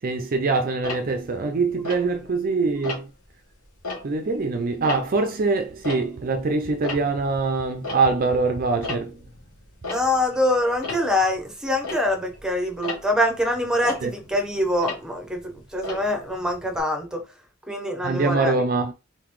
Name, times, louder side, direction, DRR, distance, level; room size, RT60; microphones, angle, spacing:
voice 1, 0.0-3.1 4.0-9.2 14.0-14.1 18.0-18.9, right 3 dB, 40° right, 0.4 m, -24 dB
Tick-tock, 0.8-2.5 2.8-3.3 3.7-6.4 6.7-16.8, left 2 dB, 80° left, 2.5 m, -37 dB
voice 2, 9.9-17.2 17.7-18.5, left 1 dB, 5° right, 0.9 m, -24 dB
4.1 x 3.8 x 3.1 m
head